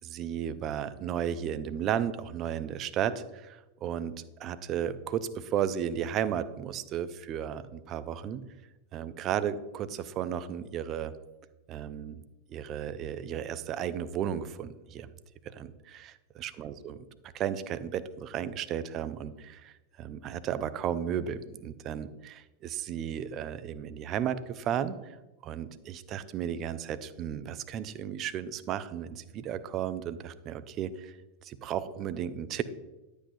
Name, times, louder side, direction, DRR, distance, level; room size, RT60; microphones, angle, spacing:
voice 1, 0.0-4.1 4.4-8.4 8.9-11.1 11.7-12.2 12.5-15.1 15.6-17.0 17.3-19.7 20.0-25.0 25.4-31.1 31.4-32.6, right 9 dB, 35° right, 14 dB, 0.5 m, -34 dB
11.0 x 8.3 x 2.6 m, 1.0 s
figure-of-eight pair, 90°, 0 cm